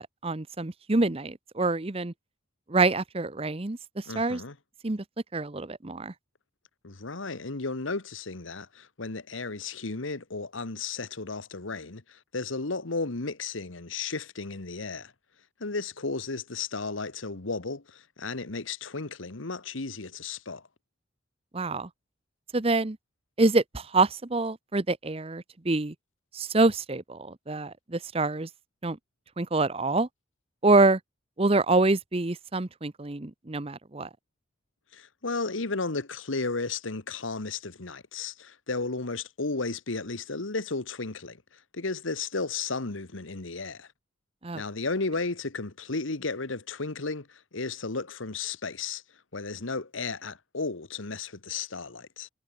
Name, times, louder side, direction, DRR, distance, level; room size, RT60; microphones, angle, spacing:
voice 1, 0.0-2.1 2.7-4.4 4.8-5.0 5.3-6.1 21.5-21.9 22.5-23.0 23.4-25.9 26.3-28.5 28.8-29.0 29.4-30.1 30.6-31.0 31.4-34.1 44.4-44.6, right 3 dB, 30° right, 0.8 m, -26 dB
voice 2, 4.1-4.5 6.8-15.1 15.6-20.6 34.9-41.4 41.7-43.9 44.5-49.0 49.3-52.3, left 3 dB, 85° left, 1.5 m, -34 dB
head